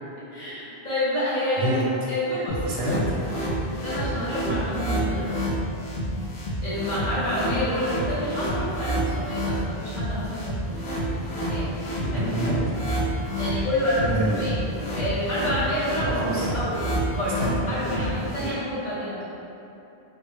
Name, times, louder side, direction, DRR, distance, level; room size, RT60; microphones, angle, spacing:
voice 1, 0.3-1.7 2.1-3.0 3.8-5.4 6.6-11.7 13.3-14.6 14.9-16.1 16.5-19.2, left 1 dB, 45° left, -10 dB, 1.0 m, -28 dB
sound 1, 2.5-18.5, right 1 dB, 70° left, 1.1 m, -29 dB
voice 2, 2.7-3.0 12.0-13.2 13.5-13.7 14.0-14.5 16.1-16.5 17.4-18.6, right 1 dB, 75° right, -5 dB, 0.9 m, -28 dB
3.8 x 2.1 x 3.2 m, 2.9 s
omnidirectional pair, 1.1 m